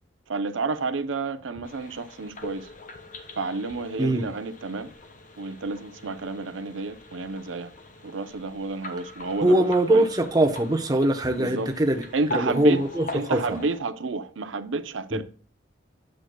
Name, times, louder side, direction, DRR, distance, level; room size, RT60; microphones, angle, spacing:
voice 1, 0.3-2.7 3.4-4.9 5.4-7.7 8.0-10.1 11.4-11.7 12.1-15.2, right 3 dB, 85° right, 0.6 m, -30 dB
sound 1, 1.6-13.8, left 2 dB, 45° left, 1.2 m, -42 dB
voice 2, 9.4-12.0 12.3-13.4 15.1-15.2, right 1 dB, 20° right, 0.8 m, -22 dB
9.2 x 7.6 x 2.2 m
head